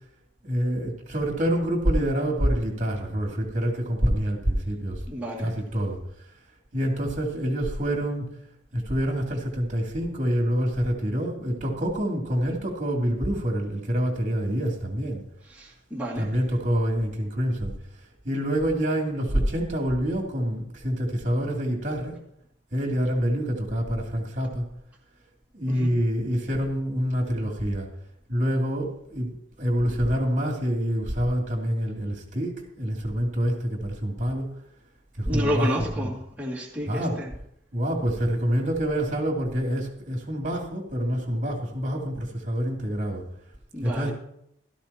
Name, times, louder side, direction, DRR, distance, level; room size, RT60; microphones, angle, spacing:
voice 1, 0.4-5.0 5.4-6.0 6.7-8.2 8.7-15.2 16.1-17.7 18.2-22.2 22.7-24.6 25.5-27.9 28.3-29.3 29.6-34.5 35.2-36.1 36.9-37.2 37.7-43.3 43.8-44.1, equal, 45° right, 0 dB, 2.9 m, -26 dB
voice 2, 5.1-5.5 15.5-16.3 25.7-25.9 35.3-37.3 43.7-44.1, equal, 5° right, -7 dB, 2.5 m, -30 dB
16.5 x 13.5 x 3.0 m, 0.74 s
head